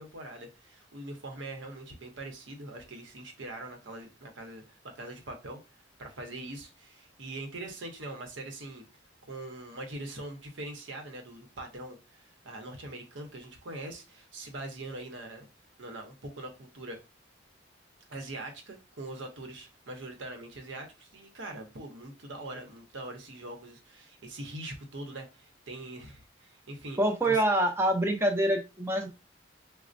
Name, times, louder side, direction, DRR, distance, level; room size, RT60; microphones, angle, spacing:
voice 1, 0.0-5.6 6.0-8.8 9.2-15.5 15.8-17.0 18.1-27.0 27.2-27.4, right 2 dB, 70° right, 0.8 m, -42 dB
voice 2, 27.0-29.1, right 1 dB, 10° right, 0.5 m, -26 dB
4.1 x 2.0 x 2.5 m
head